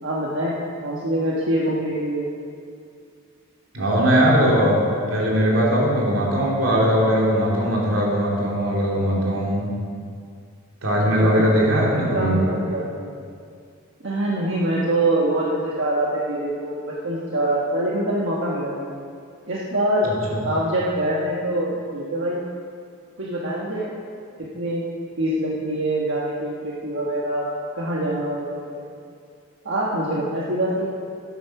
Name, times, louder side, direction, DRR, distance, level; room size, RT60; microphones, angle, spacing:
voice 1, 0.0-0.5 0.8-2.3 11.2-11.5 11.9-13.1 14.0-18.9 19.5-22.4 23.2-24.0 24.5-24.8 25.2-27.5 27.7-28.8 29.6-30.9, right 1 dB, 60° right, -5 dB, 1.4 m, -24 dB
voice 2, 3.7-4.8 5.1-9.7 10.8-12.4 20.0-20.4, equal, 85° right, -4 dB, 3.0 m, -20 dB
13.0 x 8.4 x 5.9 m, 2.3 s
head